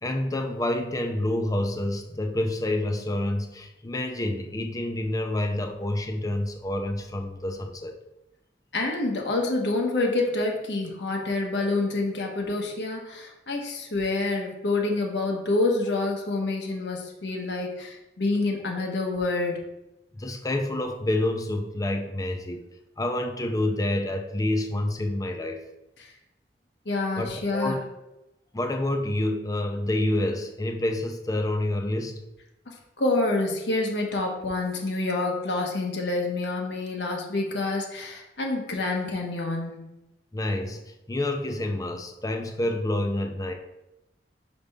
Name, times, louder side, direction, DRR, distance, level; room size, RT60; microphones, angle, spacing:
voice 1, 0.0-7.9 20.1-22.6 23.0-25.6 27.2-27.8 28.5-32.2 40.3-43.5, left 1 dB, 20° left, 4 dB, 0.6 m, -28 dB
voice 2, 8.7-19.7 26.8-27.8 32.7-39.9, left 2 dB, 80° left, 0 dB, 1.2 m, -27 dB
5.4 x 5.1 x 3.5 m, 0.94 s
head